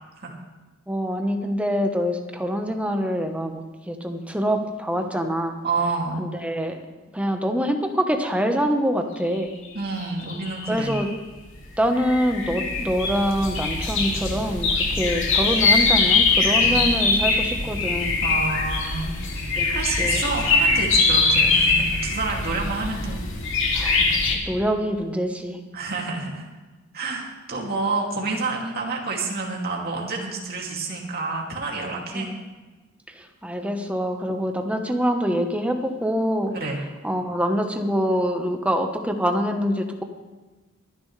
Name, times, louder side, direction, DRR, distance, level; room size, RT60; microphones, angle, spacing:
voice 1, 0.9-5.6 6.2-6.8 7.1-9.5 10.7-11.1 11.8-18.2 19.6-19.7 20.0-20.3 23.7-25.6 32.1-32.4 33.2-36.5 37.0-40.0, equal, 5° right, 4 dB, 1.2 m, -25 dB
voice 2, 5.6-6.2 9.7-11.0 16.5-16.8 18.2-19.1 19.7-23.2 24.0-24.1 25.7-26.4 26.9-32.3 36.5-36.8, right 3 dB, 50° right, -1 dB, 2.6 m, -28 dB
sound 1, 10.0-11.1 11.6-24.4, left 3 dB, 70° left, 2.5 m, -22 dB
23.5 x 10.5 x 3.3 m, 1.2 s
head